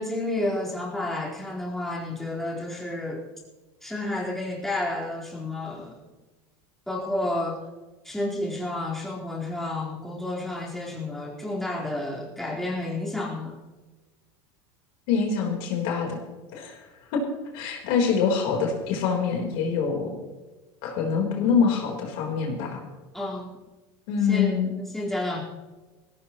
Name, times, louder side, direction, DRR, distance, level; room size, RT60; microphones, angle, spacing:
voice 1, 0.0-3.2 3.8-6.0 6.9-7.6 8.0-13.6 23.1-23.5 24.3-25.4, left 2 dB, ahead, -5 dB, 4.4 m, -30 dB
voice 2, 15.1-16.2 16.5-17.2 17.5-20.1 20.8-22.8 24.1-24.7, left 6 dB, 70° left, 1 dB, 4.1 m, -25 dB
18.5 x 17.0 x 3.1 m, 1.2 s
supercardioid pair, 115°, 13 cm